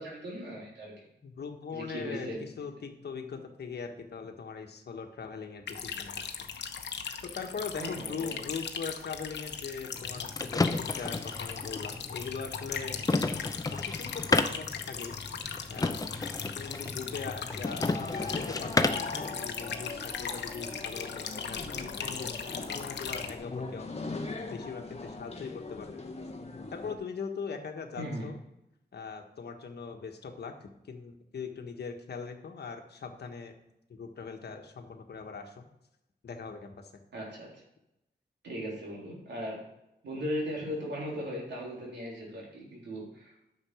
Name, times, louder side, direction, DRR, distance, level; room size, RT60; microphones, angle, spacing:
voice 1, 0.0-1.1 1.7-2.5 7.8-8.4 17.0-17.1 28.0-28.3 37.1-37.6 38.4-39.7 40.0-43.4, equal, 90° right, -3 dB, 3.5 m, -38 dB
voice 2, 1.2-6.4 7.2-13.0 13.7-15.2 15.7-16.1 16.5-17.9 18.2-26.0 26.7-28.4 28.9-33.5 33.9-35.7 36.2-36.9, left 5 dB, 70° left, 5 dB, 1.4 m, -41 dB
sound 1, 5.7-23.3, left 6 dB, 90° left, 0.9 m, -39 dB
sound 2, 9.9-19.2, left 3 dB, 20° left, 0.7 m, -32 dB
sound 3, 17.8-26.9, left 3 dB, 35° left, 1.3 m, -40 dB
9.9 x 6.8 x 5.0 m, 0.85 s
wide cardioid pair, 100°, 18 cm